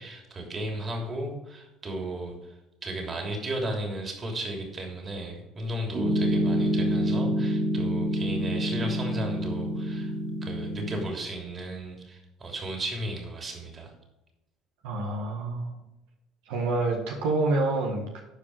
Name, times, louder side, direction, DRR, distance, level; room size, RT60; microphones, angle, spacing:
voice 1, 0.0-2.3 2.8-10.1 10.4-13.9, right 1 dB, 35° right, 1 dB, 3.1 m, -34 dB
Piano, 5.9-11.0, equal, 50° right, 3.6 m, -27 dB
voice 2, 14.8-15.7 16.5-18.2, right 2 dB, 80° right, 1 dB, 1.6 m, -27 dB
12.0 x 5.0 x 4.8 m, 0.97 s
supercardioid pair, 80°, 0 cm